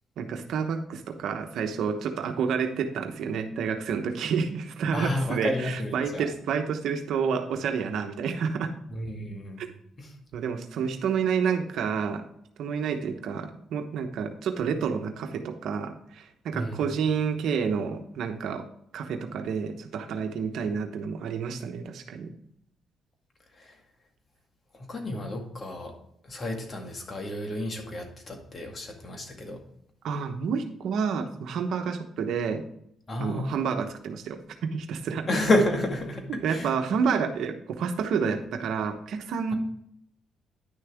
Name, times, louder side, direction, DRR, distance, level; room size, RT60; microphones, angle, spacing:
voice 1, 0.2-8.7 9.6-9.7 10.3-12.2 12.6-18.6 18.9-22.3 30.0-32.6 33.2-34.4 34.7-35.3 36.3-39.5, right 6 dB, 75° right, 6 dB, 1.0 m, -29 dB
voice 2, 4.9-6.3 8.9-9.6 10.0-10.1 16.5-17.0 23.6-23.8 24.7-25.9 26.2-29.6 33.1-33.6 35.3-36.7, left 1 dB, 40° left, 3 dB, 2.0 m, -30 dB
10.0 x 6.6 x 3.5 m, 0.71 s
cardioid pair, 90°, 0 cm